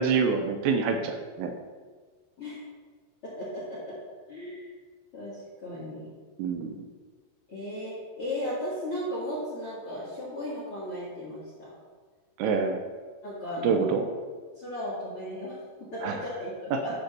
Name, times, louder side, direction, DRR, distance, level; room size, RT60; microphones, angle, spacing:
voice 1, 0.0-1.5 6.4-6.7 12.4-12.8 13.6-14.0 16.0-16.2 16.7-16.8, right 5 dB, 80° right, 5 dB, 2.6 m, -26 dB
voice 2, 3.4-3.9 4.3-4.7 5.1-6.1 7.5-11.7 13.2-14.0 14.5-15.6 15.9-16.9, left 1 dB, 65° left, -7 dB, 1.3 m, -35 dB
10.5 x 3.5 x 6.7 m, 1.5 s
omnidirectional pair, 5.6 m